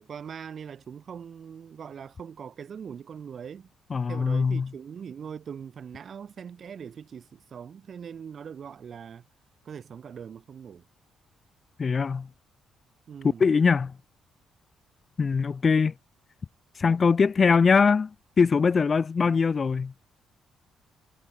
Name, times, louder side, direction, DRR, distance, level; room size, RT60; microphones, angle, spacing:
voice 1, 0.0-3.7 4.1-9.2 9.6-10.8 13.1-13.4 19.0-19.4, right 7 dB, 50° right, 3.0 m, -41 dB
voice 2, 3.9-4.7 11.8-12.3 13.4-13.9 15.2-15.9 16.8-18.1 18.4-19.9, left 5 dB, 40° left, 0.5 m, -22 dB
cardioid pair, 90°, 0 cm